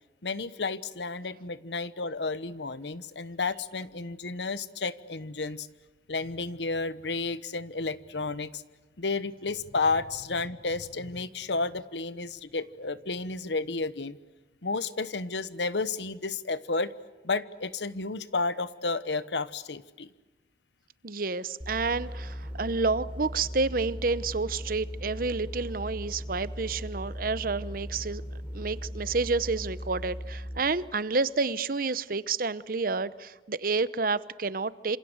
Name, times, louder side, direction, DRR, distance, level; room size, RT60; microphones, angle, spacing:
voice 1, 0.2-5.7 6.1-8.6 9.0-14.2 14.6-16.9 17.2-20.1, left 3 dB, 80° left, 15 dB, 1.1 m, -32 dB
voice 2, 21.0-28.2 28.5-35.0, right 4 dB, 55° right, 16 dB, 0.9 m, -29 dB
sound 1, 21.6-30.7, equal, 5° right, 3.7 m, -38 dB
27.0 x 27.0 x 8.1 m, 1.2 s
head